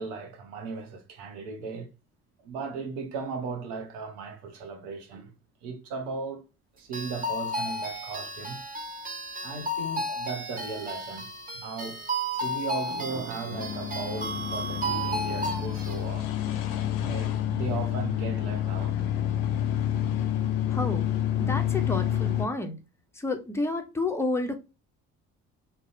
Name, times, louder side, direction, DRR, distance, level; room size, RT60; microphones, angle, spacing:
voice 1, 0.0-1.9 2.4-5.3 5.6-6.4 6.7-8.6 9.4-11.3 11.5-12.0 12.4-16.3 17.0-18.9, right 4 dB, 75° right, 0.7 m, -36 dB
sound 1, 6.9-16.0, right 1 dB, 20° right, 0.8 m, -33 dB
sound 2, 13.5-22.5, left 11 dB, 75° left, 0.5 m, -28 dB
voice 2, 20.7-21.1 21.4-22.8 23.1-24.6, left 2 dB, 5° left, 0.4 m, -30 dB
2.6 x 2.0 x 2.5 m
figure-of-eight pair, 50°, 45 cm